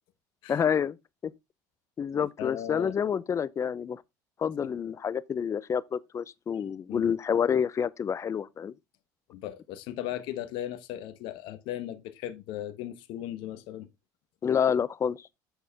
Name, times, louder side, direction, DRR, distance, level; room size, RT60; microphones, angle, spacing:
voice 1, 0.5-1.0 1.2-1.3 2.0-4.0 4.4-8.7 14.4-15.2, left 7 dB, 35° left, 0.7 m, -28 dB
voice 2, 2.4-2.9 6.9-7.1 9.3-13.9, left 12 dB, 65° left, 1.1 m, -37 dB
8.0 x 6.5 x 3.5 m
supercardioid pair, 85°, 9 cm